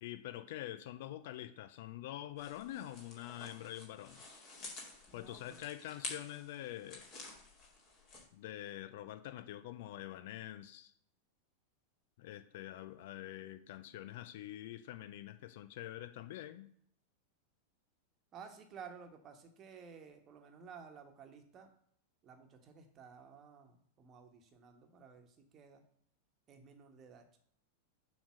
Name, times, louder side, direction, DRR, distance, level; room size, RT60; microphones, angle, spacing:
voice 1, 0.0-4.2 5.1-7.1 8.3-10.9 12.2-16.7, left 13 dB, 50° left, 11 dB, 0.4 m, -46 dB
sound 1, 2.4-8.2, left 3 dB, 35° left, 2.1 m, -50 dB
voice 2, 5.1-5.6 18.3-21.7 22.2-25.8 26.5-27.4, right 6 dB, 30° right, 4 dB, 1.2 m, -54 dB
7.1 x 3.2 x 6.1 m, 0.66 s
figure-of-eight pair, 90°, 0 cm